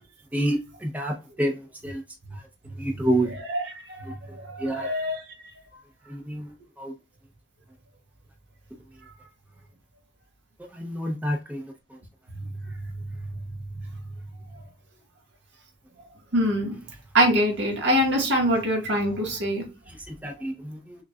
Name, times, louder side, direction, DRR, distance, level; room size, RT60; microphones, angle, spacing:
voice 1, 0.3-1.5 1.8-2.0 2.8-3.3 4.6-4.9 6.1-6.5 6.8-6.9 10.7-11.6 20.2-21.0, right 1 dB, 10° right, 0.7 m, -27 dB
voice 2, 3.3-4.0 4.5-5.2 16.3-16.8 17.1-19.6, equal, 85° right, 1.7 m, -24 dB
6.2 x 2.2 x 2.4 m
head